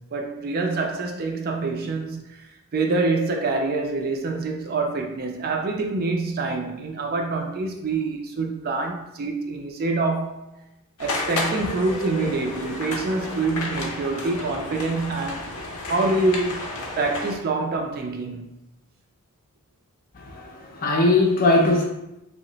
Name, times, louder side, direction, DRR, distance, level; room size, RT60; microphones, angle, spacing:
voice 1, 0.0-10.5 11.0-15.5 15.9-16.7 17.0-18.5, right 3 dB, 45° right, 0.4 m, -26 dB
sound 1, 11.0-17.4, left 2 dB, 90° left, 0.7 m, -32 dB
voice 2, 20.1-21.9, left 2 dB, 40° left, 0.5 m, -20 dB
2.9 x 2.0 x 3.8 m
head